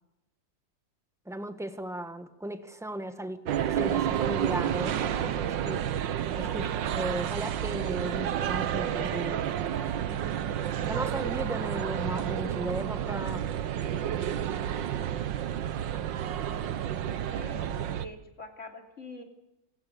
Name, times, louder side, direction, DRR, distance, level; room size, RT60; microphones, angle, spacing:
voice 1, 1.2-5.9 6.3-9.5 10.9-13.4, right 1 dB, ahead, 8 dB, 1.3 m, -36 dB
sound 1, 3.4-18.1, right 10 dB, 85° right, 1.7 m, -30 dB
voice 2, 17.3-19.2, left 1 dB, 40° left, 3 dB, 3.4 m, -44 dB
27.0 x 16.0 x 8.1 m, 0.92 s
omnidirectional pair, 1.9 m